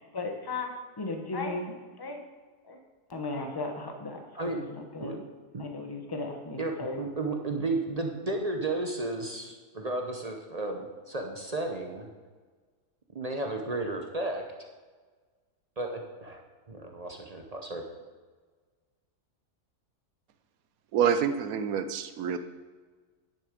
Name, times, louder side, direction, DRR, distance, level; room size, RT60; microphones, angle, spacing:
voice 1, 0.0-2.2 2.7-2.8 3.1-4.2 4.5-5.2 5.6-7.0, left 3 dB, 20° left, 4 dB, 0.8 m, -36 dB
voice 2, 6.6-12.1 13.1-14.4 15.8-16.4 16.7-17.8, right 2 dB, 35° right, 2 dB, 0.6 m, -33 dB
voice 3, 20.9-22.4, right 8 dB, 65° right, 10 dB, 1.0 m, -27 dB
10.0 x 6.7 x 5.1 m, 1.4 s
omnidirectional pair, 1.7 m